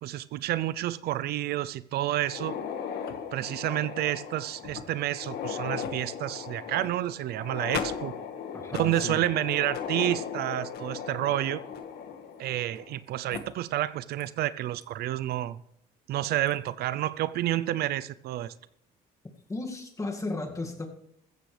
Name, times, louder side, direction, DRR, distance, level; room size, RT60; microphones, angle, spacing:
voice 1, 0.0-2.6 3.3-8.1 8.7-11.6 12.4-15.6 16.1-18.5, right 13 dB, 70° right, 0.5 m, -29 dB
sound 1, 2.2-13.0 13.3-13.4 14.2-14.3 14.8-14.9 16.2-16.5, left 7 dB, 70° left, 1.6 m, -37 dB
voice 2, 8.5-9.2 19.5-20.9, left 2 dB, 20° left, 2.1 m, -34 dB
15.0 x 14.5 x 3.3 m
cardioid pair, 110°, 17 cm